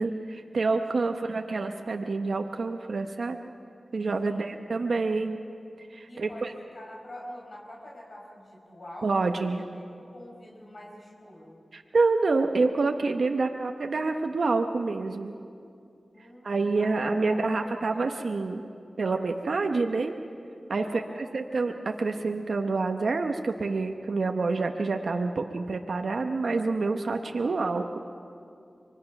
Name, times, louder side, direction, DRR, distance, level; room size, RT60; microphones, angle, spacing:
voice 1, 0.0-3.4 3.9-5.4 5.9-6.5 9.0-9.6 11.7-15.3 16.4-18.6 19.0-20.1 20.7-28.0, right 3 dB, 75° right, 5 dB, 0.9 m, -27 dB
voice 2, 6.1-11.6 16.1-18.0 20.8-21.3, left 1 dB, 65° left, -2 dB, 4.7 m, -46 dB
24.5 x 21.0 x 5.9 m, 2.5 s
cardioid pair, 45°, 0 cm